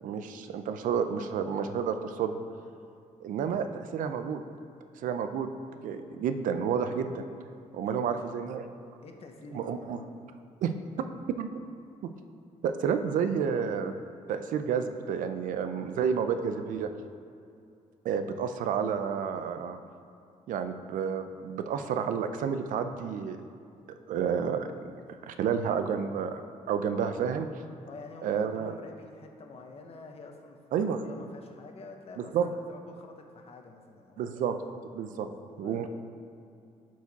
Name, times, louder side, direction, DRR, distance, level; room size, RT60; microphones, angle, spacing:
voice 1, 0.0-2.3 3.2-4.4 5.0-5.5 5.8-7.3 7.7-8.6 9.5-10.0 10.6-11.1 11.4-11.5 12.0-12.1 12.6-13.9 14.3-16.9 18.0-19.8 20.5-23.4 24.1-24.7 25.2-26.4 26.7-27.6 28.2-28.8 30.7-31.0 32.2-32.5 34.2-34.6 34.9-35.3 35.6-35.9, right 7 dB, 90° right, 8 dB, 0.5 m, -30 dB
voice 2, 7.8-8.3 9.0-10.1 27.8-30.6 30.9-34.3 35.2-35.9, left 3 dB, 50° left, 4 dB, 0.9 m, -47 dB
11.5 x 4.7 x 4.1 m, 2.5 s
cardioid pair, 125°, 13 cm